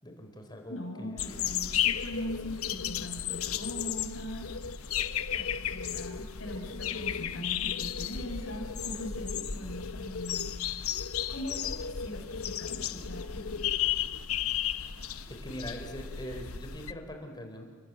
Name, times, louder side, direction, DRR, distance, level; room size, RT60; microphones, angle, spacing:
voice 1, 0.0-1.2 14.6-14.8 15.3-17.6, equal, 20° left, 4 dB, 4.1 m, -42 dB
voice 2, 0.7-4.5 5.3-10.6 11.3-13.7, left 1 dB, 60° left, 1 dB, 5.6 m, -40 dB
sound 1, 1.2-16.9, left 9 dB, 90° left, 1.1 m, -34 dB
sound 2, 1.2-15.5, right 1 dB, 85° right, 4.9 m, -61 dB
30.0 x 21.5 x 9.1 m, 1.5 s
head